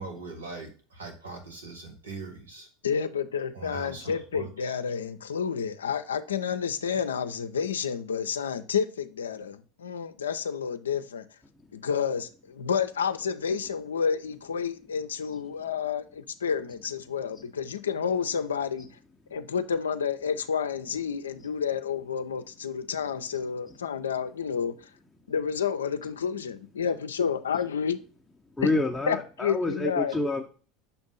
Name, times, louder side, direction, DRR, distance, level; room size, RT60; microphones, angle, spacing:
voice 1, 0.0-2.7 3.5-4.5, right 3 dB, 90° right, 1.3 m, -41 dB
voice 2, 2.8-11.3 11.7-18.9 19.3-24.9 25.3-28.0 28.6-28.7 29.1-30.1, left 7 dB, 90° left, 0.4 m, -30 dB
voice 3, 28.6-30.5, left 2 dB, 10° left, 0.6 m, -28 dB
6.8 x 2.6 x 5.4 m
hypercardioid pair, 85°, 0 cm